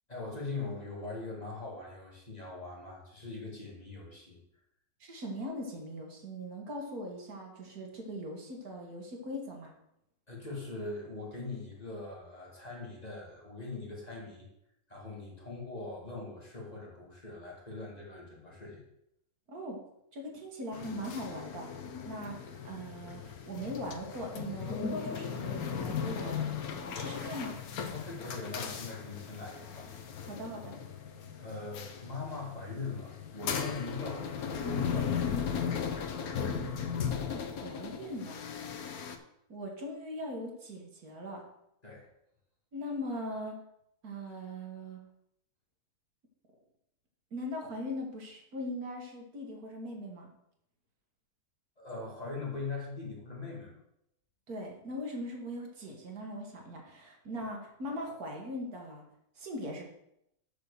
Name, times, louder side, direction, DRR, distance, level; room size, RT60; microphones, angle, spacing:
voice 1, 0.1-4.4 10.3-14.5 14.9-18.8 27.9-29.9 31.4-35.7 41.8-42.1 51.8-53.8, left 3 dB, 25° left, -3 dB, 2.4 m, -41 dB
voice 2, 5.0-9.7 19.5-19.8 20.1-27.6 30.2-30.7 37.0-38.4 39.5-41.4 42.7-43.6 44.0-45.0 47.3-50.3 54.5-59.0 59.4-59.8, equal, 75° right, 1 dB, 2.2 m, -40 dB
sound 1, 20.7-39.2, left 7 dB, 80° left, 1.3 m, -37 dB
6.8 x 6.3 x 6.7 m, 0.80 s
omnidirectional pair, 1.6 m